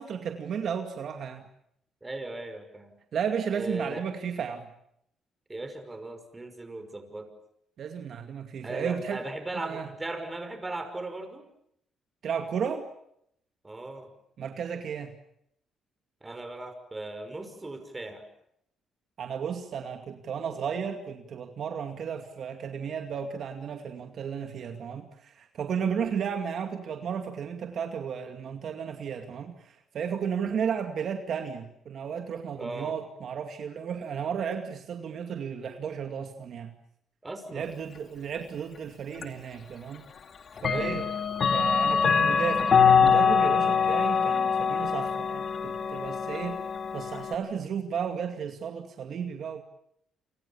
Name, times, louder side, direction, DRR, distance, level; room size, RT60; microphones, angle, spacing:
voice 1, 0.0-1.5 3.1-4.7 7.8-9.2 9.5-9.9 12.2-12.9 14.4-15.1 19.2-36.7 37.5-40.0 40.6-41.0 41.5-46.6 46.9-49.6, right 7 dB, 60° right, 5 dB, 2.3 m, -33 dB
voice 2, 2.0-3.0 3.5-4.0 5.5-7.3 8.6-11.5 13.6-14.1 16.2-18.3 32.6-33.0 37.2-37.7 40.7-41.1, right 2 dB, 20° right, 8 dB, 5.7 m, -38 dB
Clock, 39.2-39.3 40.6-47.3, left 6 dB, 50° left, 2.6 m, -24 dB
29.5 x 25.5 x 7.2 m, 0.75 s
cardioid pair, 90°, 0 cm